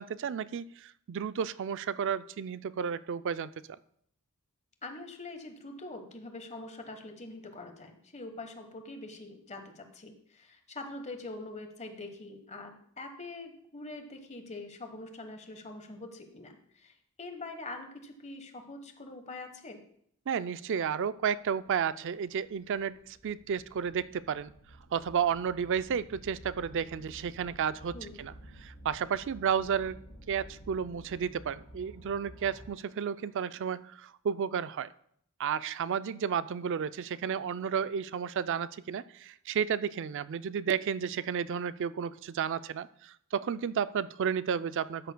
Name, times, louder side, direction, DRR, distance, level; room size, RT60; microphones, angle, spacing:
voice 1, 0.0-3.5 20.3-24.5 24.9-28.3 28.6-30.0 30.3-34.9 35.4-45.1, right 7 dB, 60° right, 15 dB, 0.4 m, -32 dB
voice 2, 4.8-16.9 17.2-19.8 27.9-28.2, left 2 dB, 30° left, 6 dB, 1.2 m, -44 dB
sound 1, 21.6-21.7 22.3-33.0, equal, 75° left, 4.4 m, -52 dB
13.0 x 9.1 x 2.2 m, 0.67 s
head